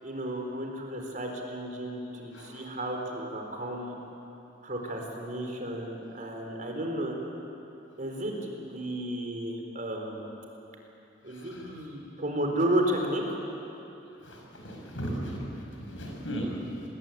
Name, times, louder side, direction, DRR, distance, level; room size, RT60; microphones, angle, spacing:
voice 1, 0.0-3.9 4.6-7.2 8.0-10.3 11.2-13.4, right 1 dB, 45° right, 2 dB, 4.2 m, -33 dB
voice 2, 14.3-15.4 15.8-16.8, equal, 85° left, 0 dB, 6.6 m, -36 dB
27.0 x 20.5 x 9.1 m, 3.0 s
head